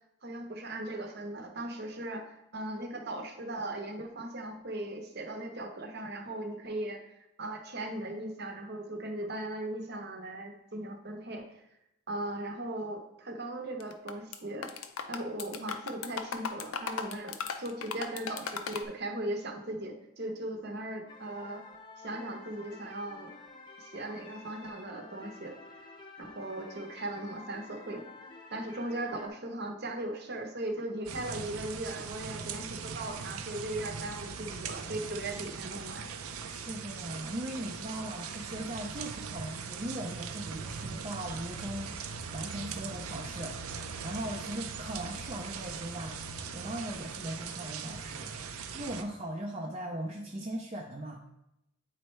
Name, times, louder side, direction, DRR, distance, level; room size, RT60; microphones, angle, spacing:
voice 1, 0.2-7.0 7.4-11.6 12.1-14.7 15.1-21.7 22.0-23.3 23.8-25.6 26.2-28.0 28.5-36.1, right 1 dB, 45° right, 4 dB, 0.8 m, -38 dB
sound 1, 13.8-14.4 14.6-18.8, left 6 dB, 75° left, 0.5 m, -37 dB
sound 2, 21.1-29.3, left 3 dB, 20° left, 0.7 m, -50 dB
sound 3, 31.0-49.0, right 5 dB, 85° right, 0.6 m, -40 dB
voice 2, 36.5-42.0 42.3-46.2 46.5-51.3, right 1 dB, 30° right, 0 dB, 0.5 m, -39 dB
9.0 x 4.4 x 3.2 m, 0.86 s
head